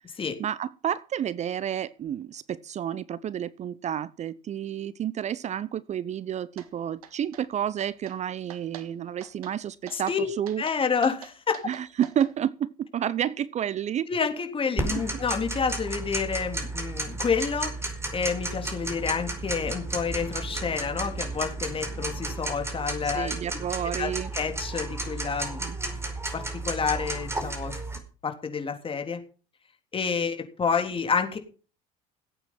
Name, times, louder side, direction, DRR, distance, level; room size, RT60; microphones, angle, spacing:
voice 1, 0.4-10.6 11.6-14.1 14.9-15.0 23.0-24.3 25.6-26.0, right 10 dB, 40° right, 0.7 m, -30 dB
sound 1, 6.6-6.7 7.0-7.4 7.8-8.2 8.5-8.9 9.2-9.6 9.9-10.2 10.5-12.3, right 10 dB, 80° right, 1.6 m, -45 dB
voice 2, 9.9-10.3 10.6-11.6 14.1-17.7 18.1-23.4 24.0-25.6 26.3-27.8 28.2-29.2 29.9-31.4, left 6 dB, 30° left, 3.4 m, -29 dB
Tick-tock, 14.8-28.0, right 2 dB, 15° right, 4.8 m, -33 dB
17.0 x 8.8 x 5.7 m
hypercardioid pair, 70°, 18 cm